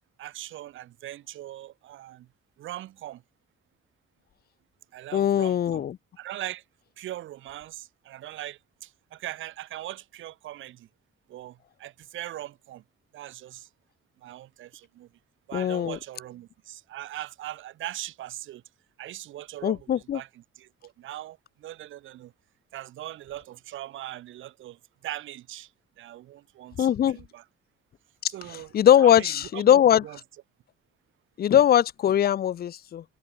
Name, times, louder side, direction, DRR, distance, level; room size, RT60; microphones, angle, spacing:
voice 1, 0.2-2.3 2.6-3.2 4.9-5.8 6.2-6.6 7.0-10.9 11.3-12.8 13.1-13.7 14.2-15.1 15.5-18.6 19.0-22.3 22.7-25.7 26.0-27.4 28.3-30.2, right 14 dB, 80° right, 1.8 m, -40 dB
voice 2, 5.1-6.0 15.5-16.0 19.6-20.2 26.8-27.2 28.7-30.0 31.4-33.0, left 10 dB, 50° left, 0.7 m, -20 dB
cardioid pair, 90°, 20 cm